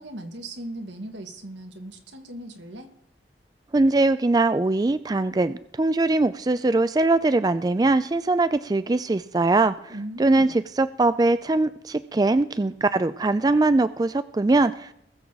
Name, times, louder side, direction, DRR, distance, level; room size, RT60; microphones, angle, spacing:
voice 1, 0.0-2.9 9.9-10.6, right 1 dB, 85° right, 5 dB, 1.8 m, -38 dB
voice 2, 3.7-9.9 10.2-14.9, right 2 dB, 20° right, 13 dB, 0.3 m, -21 dB
20.5 x 7.3 x 4.0 m, 0.75 s
head